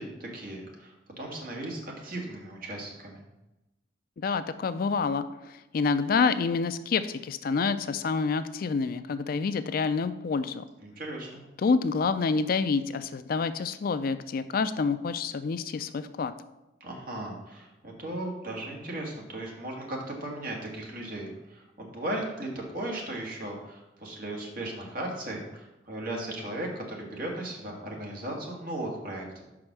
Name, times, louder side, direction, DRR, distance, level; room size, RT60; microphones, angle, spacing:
voice 1, 0.0-3.2 10.8-11.4 16.8-29.4, right 1 dB, 50° right, -1 dB, 1.7 m, -37 dB
voice 2, 4.2-10.6 11.6-16.3, left 4 dB, 50° left, 12 dB, 0.4 m, -28 dB
5.3 x 4.9 x 6.0 m, 0.97 s
head